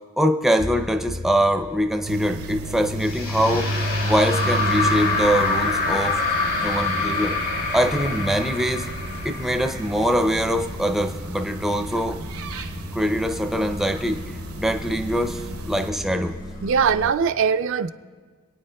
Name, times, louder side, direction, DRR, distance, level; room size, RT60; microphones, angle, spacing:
voice 1, 0.2-3.7 4.0-6.2 6.6-7.4 7.7-8.9 9.2-12.2 12.9-14.2 14.6-16.4, equal, ahead, 5 dB, 0.4 m, -23 dB
sound 1, 0.6-17.1, left 1 dB, 40° left, 0.8 m, -39 dB
sound 2, 2.0-15.9, right 2 dB, 80° right, 0.8 m, -32 dB
sound 3, 3.0-10.3, left 3 dB, 75° left, 2.9 m, -26 dB
voice 2, 16.6-17.9, right 6 dB, 60° right, 10 dB, 0.4 m, -21 dB
26.5 x 9.1 x 2.2 m, 1.5 s
head